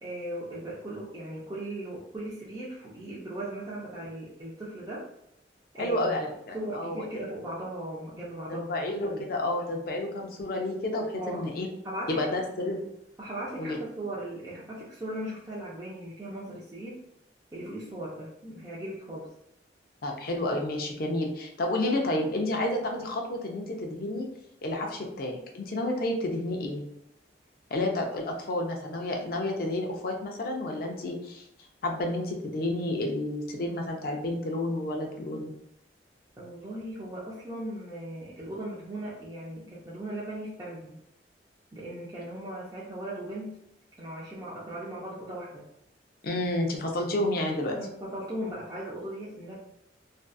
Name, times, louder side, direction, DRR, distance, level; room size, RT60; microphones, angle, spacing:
voice 1, 0.0-5.1 5.7-8.7 8.9-9.3 11.1-11.5 11.8-12.3 13.2-17.0 17.5-19.3 36.4-41.0 41.7-43.6 44.0-45.7 47.7-49.5, right 1 dB, 20° right, -7 dB, 0.5 m, -38 dB
voice 2, 5.8-7.0 8.5-11.7 12.1-12.8 13.6-13.8 20.0-24.3 24.6-26.8 27.7-31.4 31.8-35.5 46.2-47.8, left 1 dB, 55° left, 2 dB, 0.4 m, -30 dB
2.6 x 2.3 x 2.3 m, 0.78 s
head